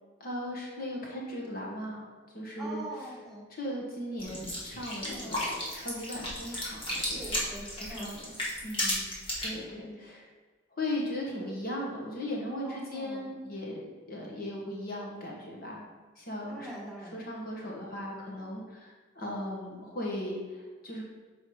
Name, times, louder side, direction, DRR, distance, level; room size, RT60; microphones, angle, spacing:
voice 1, 0.2-2.0 2.3-3.1 3.5-7.4 7.9-8.2 8.6-9.1 9.4-10.2 10.7-15.9 16.2-16.7 17.1-21.0, left 1 dB, 50° left, -2 dB, 1.3 m, -37 dB
voice 2, 2.6-3.5 5.1-5.4 7.0-8.1 9.7-10.0 11.4-11.5 12.6-13.3 16.5-17.2, right 1 dB, ahead, -5 dB, 1.8 m, -43 dB
sound 1, 4.2-9.5, left 1 dB, 30° left, 2.0 m, -34 dB
6.5 x 4.8 x 4.7 m, 1.4 s
head